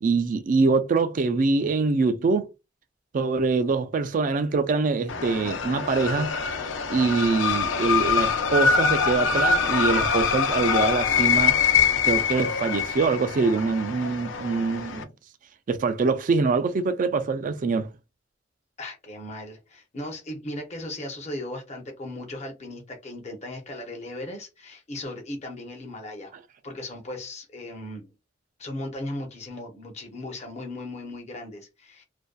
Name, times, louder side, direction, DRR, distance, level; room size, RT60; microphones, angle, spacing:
voice 1, 0.0-2.5 3.1-6.4 6.9-11.6 12.0-15.1 15.7-17.9, right 4 dB, 45° right, 0.3 m, -24 dB
sound 1, 5.1-15.0, left 6 dB, 75° left, 0.4 m, -24 dB
voice 2, 18.8-26.3 26.6-28.1 28.6-32.0, left 1 dB, 35° left, 0.6 m, -37 dB
2.5 x 2.1 x 2.2 m
head